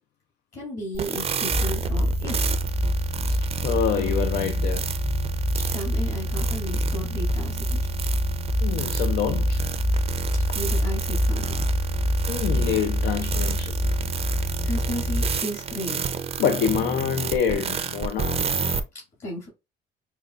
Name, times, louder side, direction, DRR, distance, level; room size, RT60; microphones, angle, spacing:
voice 1, 0.5-2.6 5.7-7.8 10.5-11.6 14.6-16.1 19.2-19.5, equal, 45° left, 2.1 m, -34 dB
sound 1, 0.9-18.8, right 6 dB, 35° right, 0.4 m, -31 dB
sound 2, 1.5-15.4, equal, 5° left, 0.7 m, -25 dB
voice 2, 3.2-4.9 8.6-9.6 12.3-13.7 16.4-18.5, left 8 dB, 70° left, 0.5 m, -26 dB
5.2 x 2.2 x 2.4 m
cardioid pair, 110°, 18 cm